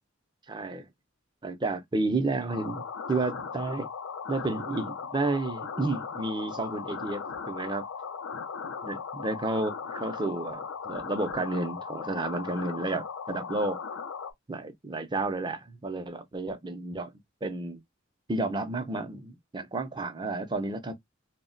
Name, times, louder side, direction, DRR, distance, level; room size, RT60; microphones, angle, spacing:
voice 1, 0.5-0.8 1.4-3.9 4.3-7.9 8.8-13.8 14.5-17.1 17.4-17.8 18.3-20.9, right 2 dB, 20° right, 0.5 m, -31 dB
sound 1, 2.5-14.3, left 6 dB, 80° left, 0.5 m, -38 dB
2.1 x 2.1 x 3.7 m
head